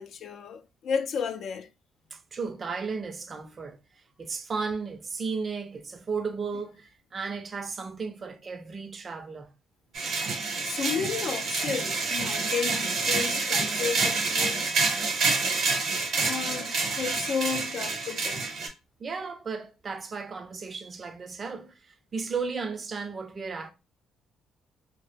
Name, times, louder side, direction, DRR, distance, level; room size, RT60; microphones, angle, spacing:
voice 1, 0.0-1.7 10.6-14.7 16.1-18.5, left 6 dB, 65° left, 0.3 m, -33 dB
voice 2, 2.1-3.8 4.2-9.5 14.9-15.1 19.0-23.7, right 5 dB, 40° right, 0.5 m, -34 dB
sound 1, 9.9-18.7, right 4 dB, 65° right, 0.8 m, -28 dB
2.0 x 2.0 x 3.1 m
cardioid pair, 80°, 0 cm